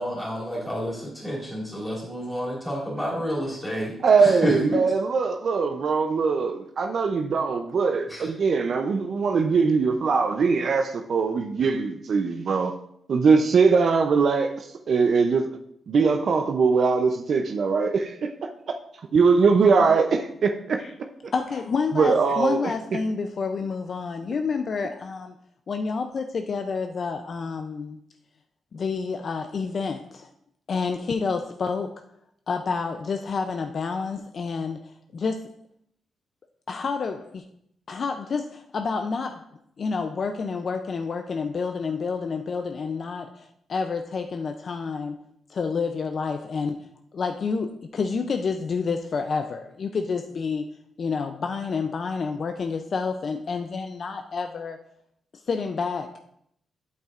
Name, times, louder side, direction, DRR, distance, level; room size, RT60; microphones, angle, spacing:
voice 1, 0.0-3.9 4.2-4.8 8.1-8.3, equal, 10° left, -5 dB, 2.8 m, -29 dB
voice 2, 4.0-12.7 13.1-15.5 15.9-18.3 19.1-20.8 21.9-22.6 22.9-23.0, right 5 dB, 50° right, 5 dB, 0.5 m, -21 dB
voice 3, 21.3-25.4 25.7-28.0 28.7-30.3 30.7-32.0 32.5-35.5 36.7-37.4 37.9-39.4 39.8-45.2 45.5-46.8 47.1-50.7 51.0-54.8 55.5-56.2, left 5 dB, 45° left, 6 dB, 0.4 m, -29 dB
9.2 x 8.1 x 2.5 m, 0.72 s
wide cardioid pair, 145°, 0 cm